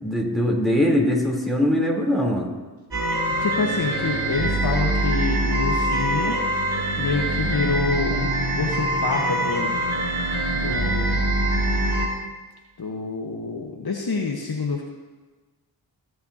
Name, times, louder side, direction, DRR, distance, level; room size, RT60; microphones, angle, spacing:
voice 1, 0.0-2.5, left 1 dB, ahead, -2 dB, 3.7 m, -21 dB
sound 1, 2.9-12.1, right 1 dB, 45° right, 3.6 m, -24 dB
voice 2, 3.4-6.4 7.0-9.8 10.5-11.2 12.8-14.8, left 4 dB, 50° left, 0 dB, 1.4 m, -27 dB
20.0 x 7.6 x 2.9 m, 1.3 s
cardioid pair, 40°, 47 cm